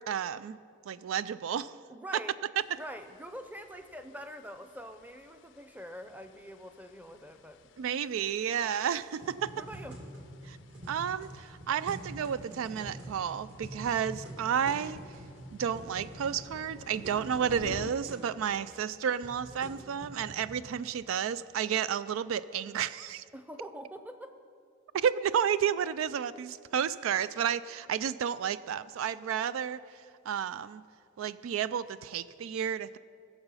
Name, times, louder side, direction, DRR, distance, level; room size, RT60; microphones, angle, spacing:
voice 1, 0.1-0.6 0.9-1.7 7.8-9.5 10.5-10.6 10.9-15.0 15.6-23.2 24.9-29.8 30.3-30.8 31.2-33.0, right 8 dB, 90° right, 16 dB, 0.3 m, -31 dB
voice 2, 1.9-2.4 2.8-7.6 9.5-10.0 23.3-24.3, equal, 10° right, 8 dB, 0.6 m, -44 dB
sound 1, 2.6-17.9, left 4 dB, 65° left, 0.4 m, -52 dB
sound 2, 9.1-17.3 17.5-17.6 17.8-18.2 18.9-20.5, right 1 dB, 60° right, 2.4 m, -46 dB
20.0 x 7.0 x 5.5 m, 2.4 s
head